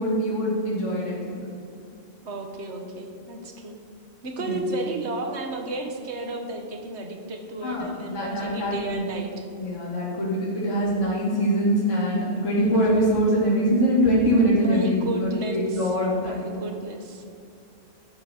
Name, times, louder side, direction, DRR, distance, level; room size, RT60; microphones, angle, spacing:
voice 1, 0.0-1.4 4.4-4.7 7.6-9.1 9.6-16.5, equal, 60° left, -5 dB, 2.2 m, -23 dB
voice 2, 2.2-3.8 4.2-9.5 14.6-15.9 16.2-17.2, right 2 dB, 55° right, 4 dB, 1.2 m, -33 dB
11.5 x 3.9 x 7.6 m, 2.5 s
omnidirectional pair, 1.4 m